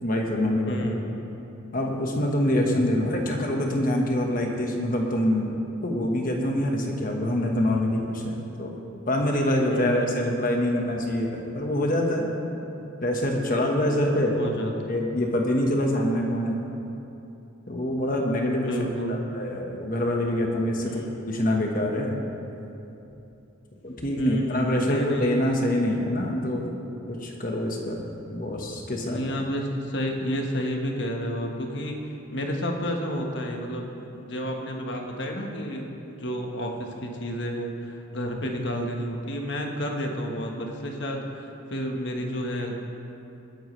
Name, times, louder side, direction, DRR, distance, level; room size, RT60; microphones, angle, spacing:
voice 1, 0.0-0.8 1.7-5.6 5.8-8.7 9.1-12.2 13.0-14.4 14.9-16.6 17.7-18.7 19.1-22.2 23.8-26.7 27.1-29.2, left 1 dB, 40° left, 1 dB, 1.4 m, -25 dB
voice 2, 0.7-1.1 9.7-10.5 14.3-14.7 18.6-19.2 20.8-21.2 24.2-25.5 29.0-32.0 32.3-42.8, equal, 60° left, 1 dB, 1.4 m, -31 dB
20.0 x 10.5 x 3.3 m, 2.9 s
head